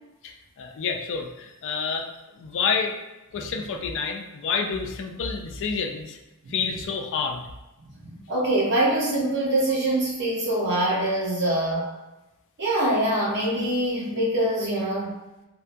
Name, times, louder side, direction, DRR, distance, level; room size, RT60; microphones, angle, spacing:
voice 1, 0.2-2.1 2.4-2.9 3.3-6.2 6.5-7.4, left 5 dB, 55° left, 3 dB, 0.3 m, -28 dB
voice 2, 8.0-11.9 12.6-15.1, right 1 dB, 50° right, -4 dB, 0.8 m, -24 dB
2.7 x 2.3 x 2.5 m, 0.99 s
head